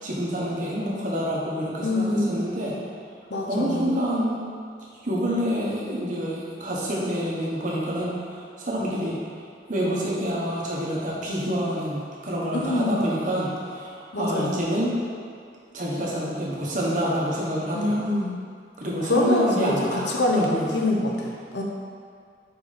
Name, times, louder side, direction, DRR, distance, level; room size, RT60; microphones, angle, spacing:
voice 1, 0.0-2.8 3.5-4.4 5.0-9.2 9.7-14.9 15.7-18.0 18.8-20.1 20.3-20.7, equal, 45° right, -5 dB, 1.2 m, -27 dB
voice 2, 1.8-2.4 3.3-3.9 12.5-13.1 14.1-14.6 17.7-18.4 19.0-21.6, left 1 dB, 80° left, -1 dB, 0.9 m, -25 dB
4.7 x 4.1 x 5.1 m, 2.3 s
head